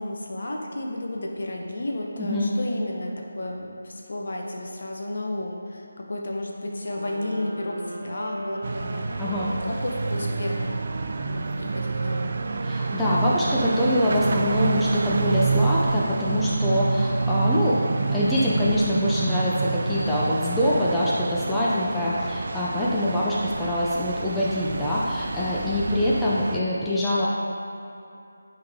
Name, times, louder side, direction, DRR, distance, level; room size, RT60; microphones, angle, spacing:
voice 1, 0.0-10.8 11.2-12.4 21.5-22.2, left 1 dB, 60° left, 0 dB, 0.9 m, -32 dB
voice 2, 2.2-2.5 9.2-9.5 12.6-27.3, left 1 dB, 5° left, -8 dB, 0.5 m, -24 dB
sound 1, 6.8-16.1, right 1 dB, 75° right, 0.9 m, -38 dB
sound 2, 8.6-26.6, right 4 dB, 45° right, 0.3 m, -28 dB
9.7 x 3.6 x 3.7 m, 2.6 s
figure-of-eight pair, 165°, 0 cm